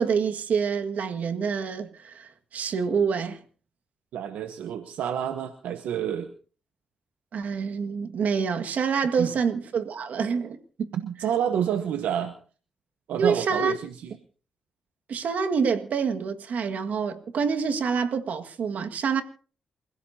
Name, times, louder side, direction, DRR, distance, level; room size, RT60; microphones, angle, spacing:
voice 1, 0.0-3.4 7.3-10.9 13.2-13.7 15.1-19.2, right 6 dB, 70° right, 1.9 m, -27 dB
voice 2, 4.1-6.3 9.2-9.4 10.9-12.4 13.1-14.1, right 9 dB, 85° right, 1.1 m, -29 dB
28.5 x 16.0 x 2.8 m
cardioid pair, 75°, 3 cm